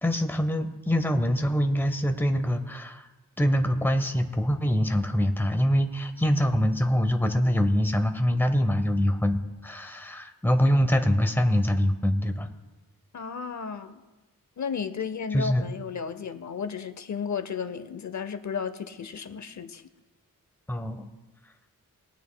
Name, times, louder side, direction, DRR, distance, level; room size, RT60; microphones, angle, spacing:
voice 1, 0.0-3.0 3.4-12.5 15.3-15.6 20.7-21.1, equal, 5° left, 7 dB, 0.7 m, -24 dB
voice 2, 13.1-14.0 14.6-19.8, left 6 dB, 55° left, 10 dB, 0.6 m, -33 dB
21.0 x 9.1 x 2.2 m, 1.2 s
wide cardioid pair, 155°, 34 cm